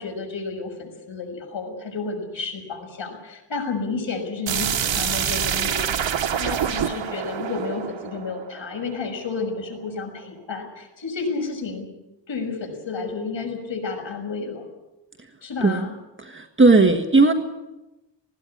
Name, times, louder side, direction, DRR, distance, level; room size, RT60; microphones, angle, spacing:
voice 1, 0.0-11.9 12.3-14.7 15.4-15.9 16.7-17.0, left 4 dB, 80° left, 3 dB, 6.4 m, -31 dB
sound 1, 4.5-9.2, right 8 dB, 80° right, 1.2 m, -26 dB
voice 2, 16.2-17.3, right 3 dB, 25° right, 5 dB, 1.5 m, -16 dB
20.0 x 17.0 x 9.9 m, 1.0 s
wide cardioid pair, 120°, 44 cm